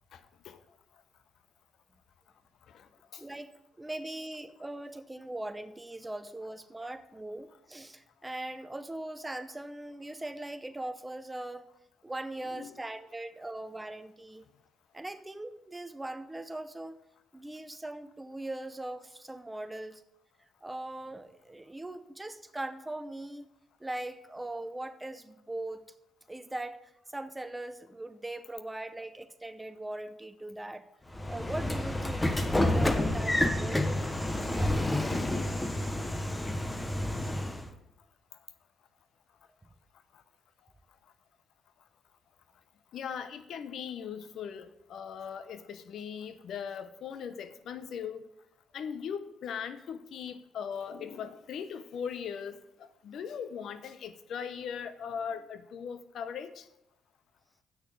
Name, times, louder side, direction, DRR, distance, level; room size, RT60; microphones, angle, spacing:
voice 1, 0.1-0.6 2.7-3.2 12.5-12.8 40.1-40.2 42.9-48.2 48.7-56.7, left 7 dB, 70° left, 12 dB, 0.7 m, -39 dB
voice 2, 3.2-11.7 12.0-14.4 14.9-17.0 17.3-20.0 20.6-23.5 23.8-25.8 26.3-26.8 27.1-30.9 31.2-34.0 35.2-35.4, right 1 dB, 15° right, 11 dB, 0.7 m, -40 dB
Train / Sliding door, 31.1-37.7, left 1 dB, 15° left, 0.9 m, -29 dB
8.0 x 6.2 x 6.9 m, 0.83 s
cardioid pair, 90°, 0 cm